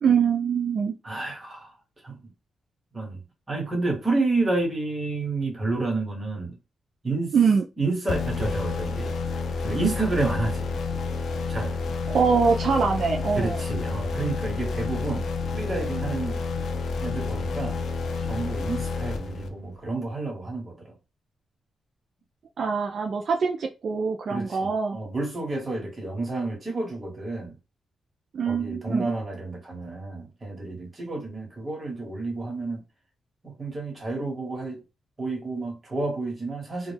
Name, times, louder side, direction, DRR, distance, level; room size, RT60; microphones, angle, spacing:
voice 1, 0.0-1.0 7.3-7.6 12.1-13.6 22.6-25.0 28.3-29.1, right 5 dB, 60° right, 0.3 m, -23 dB
voice 2, 1.0-1.7 2.0-2.2 2.9-3.2 3.5-6.6 7.0-7.4 7.8-9.1 9.6-10.7 11.5-11.8 13.4-15.2 15.5-16.4 17.0-17.8 18.2-20.9 24.3-27.5 28.5-32.8 33.4-34.8 35.2-36.9, right 3 dB, 25° right, 1.1 m, -30 dB
sound 1, 8.1-19.8, left 4 dB, 65° left, 0.4 m, -29 dB
2.2 x 2.1 x 3.2 m
cardioid pair, 100°, 0 cm